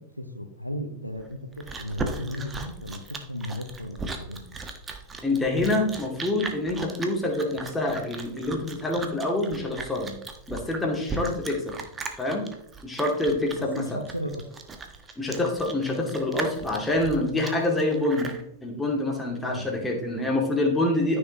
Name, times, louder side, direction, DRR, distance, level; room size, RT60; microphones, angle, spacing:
voice 1, 0.0-4.6 11.2-11.4 13.7-14.4 19.4-19.6, left 1 dB, 90° left, 7 dB, 1.0 m, -35 dB
Chewing mastication, 1.2-18.4, right 3 dB, 15° right, 1.3 m, -37 dB
voice 2, 5.2-10.2 10.5-11.7 12.2-12.5 12.8-14.0 15.2-18.3 18.6-21.2, left 2 dB, 10° left, 0 dB, 2.4 m, -26 dB
14.0 x 6.6 x 3.0 m, 0.75 s
figure-of-eight pair, 90°, 0 cm